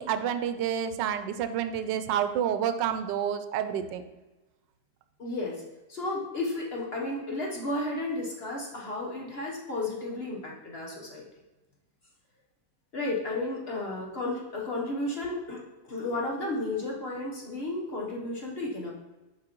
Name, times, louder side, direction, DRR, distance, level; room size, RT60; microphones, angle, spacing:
voice 1, 0.0-4.0, right 9 dB, 85° right, 10 dB, 1.2 m, -29 dB
voice 2, 5.2-5.6 5.9-11.2 12.9-15.6 15.9-18.9, left 2 dB, 40° left, -2 dB, 1.0 m, -33 dB
7.4 x 5.2 x 3.0 m, 1.1 s
omnidirectional pair, 1.9 m